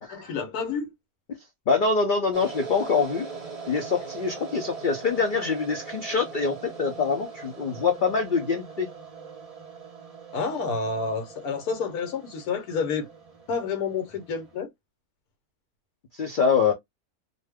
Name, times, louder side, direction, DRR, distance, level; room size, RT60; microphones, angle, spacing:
voice 1, 0.1-0.9 10.3-13.1 13.5-14.7, left 5 dB, 75° left, 1.2 m, -29 dB
voice 2, 1.7-3.3 3.7-8.9 16.1-16.7, left 5 dB, 60° left, 0.5 m, -25 dB
sound 1, 2.3-14.6, right 5 dB, 30° right, 0.8 m, -42 dB
2.6 x 2.1 x 3.3 m
omnidirectional pair, 1.6 m